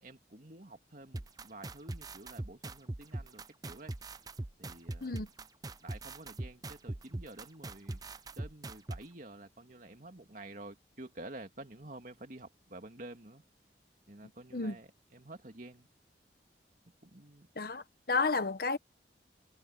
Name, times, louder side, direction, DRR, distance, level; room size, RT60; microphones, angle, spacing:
voice 1, 0.0-3.9 4.6-5.2 5.8-8.0 8.4-13.4 14.1-15.9 17.0-17.5, right 2 dB, 50° right, 2.5 m, -50 dB
sound 1, 1.1-9.0, right 2 dB, 20° right, 0.6 m, -40 dB
voice 2, 17.6-18.8, left 4 dB, 55° left, 1.3 m, -32 dB
head